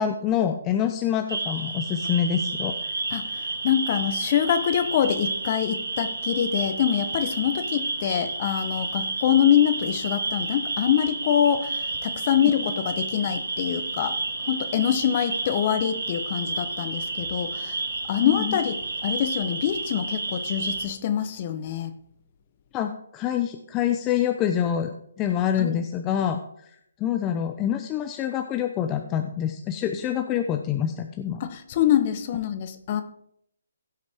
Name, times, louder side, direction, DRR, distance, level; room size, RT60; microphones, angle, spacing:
voice 1, 0.0-2.8 18.2-18.6 22.7-26.4 27.0-31.4, left 9 dB, 20° left, 6 dB, 0.7 m, -26 dB
sound 1, 1.3-20.8, right 3 dB, 85° right, 3.7 m, -31 dB
voice 2, 3.1-14.2 14.4-17.8 18.1-18.7 19.0-21.9 25.6-25.8 31.4-33.0, left 9 dB, 40° left, 10 dB, 1.0 m, -25 dB
16.0 x 6.5 x 3.6 m, 0.72 s
hypercardioid pair, 150°, 0 cm